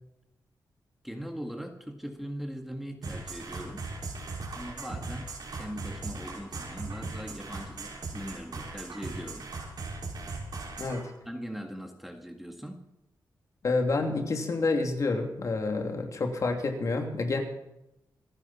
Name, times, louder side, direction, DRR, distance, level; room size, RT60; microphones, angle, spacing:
voice 1, 1.0-3.9 4.5-9.5 11.3-12.9, equal, ahead, 4 dB, 1.8 m, -40 dB
sound 1, 3.0-11.0, right 3 dB, 65° right, 5.4 m, -38 dB
voice 2, 13.6-17.4, left 3 dB, 45° left, 3 dB, 2.9 m, -28 dB
27.0 x 10.5 x 4.4 m, 0.89 s
wide cardioid pair, 130°, 7 cm